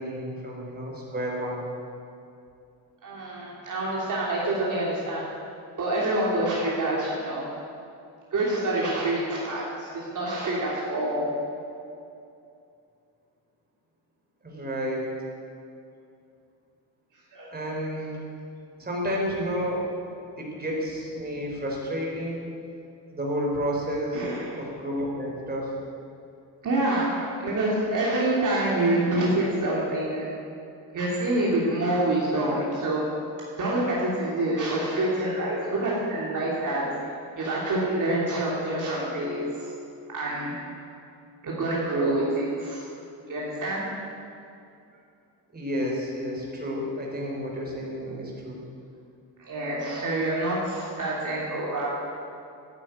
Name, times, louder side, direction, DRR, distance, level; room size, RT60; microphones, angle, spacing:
voice 1, 0.0-1.6 14.4-15.1 17.5-18.1 18.8-19.8 20.4-22.5 23.1-24.3 24.6-25.8 45.5-48.6, equal, 25° right, -2 dB, 4.4 m, -31 dB
voice 2, 3.0-5.2 5.8-7.4 8.3-11.3 17.3-17.5 24.1-24.5 26.6-30.3 30.9-33.1 33.6-36.9 37.4-39.7 40.1-40.6 41.4-42.8 43.3-43.9 49.5-51.9, right 1 dB, 50° right, -5 dB, 3.1 m, -26 dB
12.5 x 9.9 x 9.5 m, 2.6 s
cardioid pair, 115°, 40 cm